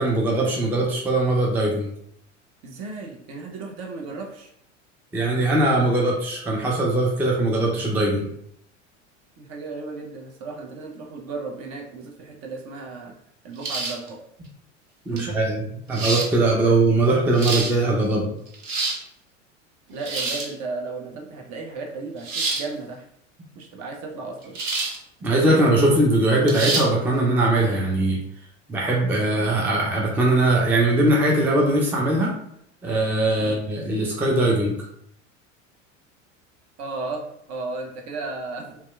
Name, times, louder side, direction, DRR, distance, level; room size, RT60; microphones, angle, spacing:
voice 1, 0.0-1.9 5.1-8.3 15.1-15.6 15.9-18.2 25.2-28.2 28.7-32.3 32.8-34.8, right 2 dB, 5° right, -2 dB, 0.4 m, -21 dB
voice 2, 2.6-4.5 9.4-13.1 13.4-14.2 15.1-15.4 19.9-23.1 23.5-24.6 33.4-33.6 36.8-38.8, right 3 dB, 45° right, 1 dB, 0.7 m, -34 dB
sound 1, 13.6-14.1 15.2-15.3 15.9-16.3 17.1-17.7 18.5-19.0 20.0-20.5 22.2-22.7 24.6-25.0 25.4-25.5 26.5-26.9, right 3 dB, 85° right, 0.7 m, -26 dB
2.8 x 2.2 x 2.2 m, 0.70 s
hypercardioid pair, 80°, 38 cm